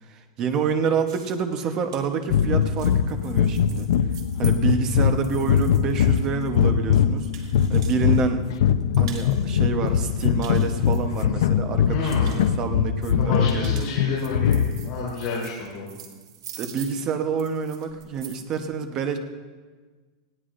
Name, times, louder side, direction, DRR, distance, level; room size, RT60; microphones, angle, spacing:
voice 1, 0.0-3.9 4.4-8.5 9.0-14.1 16.6-19.2, right 5 dB, 25° right, 6 dB, 0.9 m, -28 dB
sound 1, 1.1-8.2 8.5-9.5 9.9-11.5 11.8-12.5 13.2-18.6, right 9 dB, 85° right, 2.4 m, -45 dB
sound 2, 2.3-15.0, left 8 dB, 70° left, 0.6 m, -22 dB
voice 2, 11.9-12.4 13.2-15.9, left 4 dB, 30° left, -8 dB, 3.5 m, -30 dB
19.5 x 16.0 x 2.6 m, 1.4 s
supercardioid pair, 175°, 3 cm